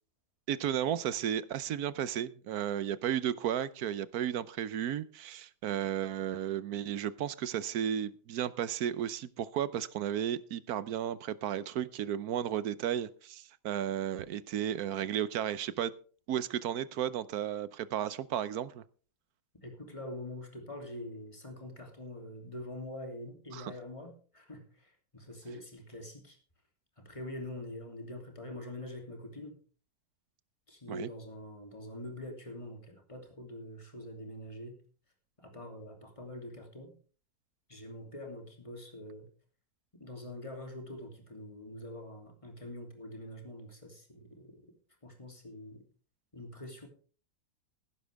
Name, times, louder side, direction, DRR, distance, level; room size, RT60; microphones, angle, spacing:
voice 1, 0.5-15.9 16.3-18.8 23.5-23.7 30.9-31.1, right 10 dB, 70° right, 1.2 m, -34 dB
voice 2, 19.5-26.4 27.0-29.6 30.7-34.8 35.4-36.9 37.7-39.3 39.9-44.7 45.0-45.8 46.3-46.9, left 1 dB, 20° left, 3.0 m, -45 dB
15.5 x 11.5 x 3.5 m
omnidirectional pair, 1.7 m